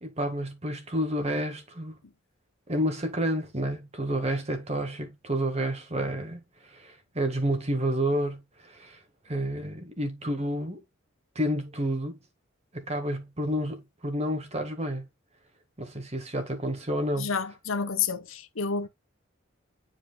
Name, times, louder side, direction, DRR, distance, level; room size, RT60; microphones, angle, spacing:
voice 1, 0.0-2.0 2.7-9.0 9.3-10.8 11.4-12.2 12.7-15.0 15.8-17.3, right 1 dB, 35° right, 1.7 m, -30 dB
voice 2, 17.2-18.9, left 5 dB, 80° left, 1.0 m, -30 dB
10.0 x 4.8 x 2.3 m
head